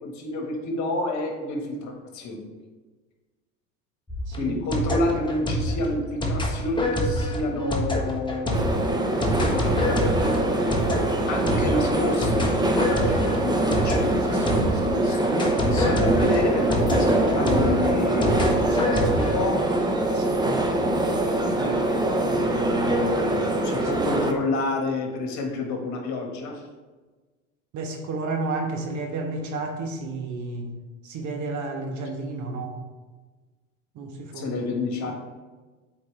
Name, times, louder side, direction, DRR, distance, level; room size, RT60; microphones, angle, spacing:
voice 1, 0.0-2.5 4.4-8.9 9.3-9.9 11.3-15.3 15.7-19.6 21.5-21.8 22.1-26.6 34.3-35.1, left 2 dB, 45° left, 1 dB, 1.6 m, -29 dB
sound 1, 4.1-15.0 15.4-19.3, equal, 10° left, 1.2 m, -27 dB
voice 2, 4.3-4.6 18.9-19.0 20.1-20.5 27.7-30.8 31.0-32.8 33.9-34.7 35.0-35.1, right 3 dB, 50° right, 3 dB, 1.2 m, -31 dB
sound 2, 8.5-24.3, right 1 dB, 10° right, 0.8 m, -23 dB
8.1 x 4.3 x 3.3 m, 1.3 s
hypercardioid pair, 90°, 39 cm